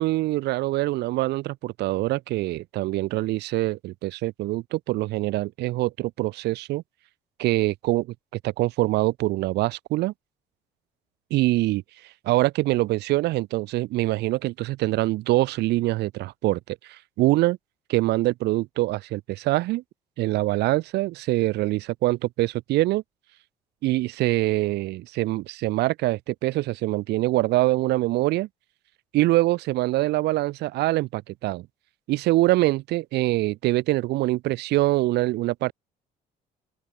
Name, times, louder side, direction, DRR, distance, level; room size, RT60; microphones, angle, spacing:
voice 1, 0.0-6.8 7.4-8.1 8.4-10.1 11.3-11.8 12.3-17.6 17.9-19.8 20.2-23.0 23.8-28.5 29.1-31.7 32.1-35.7, right 18 dB, 80° right, 1.9 m, -24 dB
open air
cardioid pair, 110°, 17 cm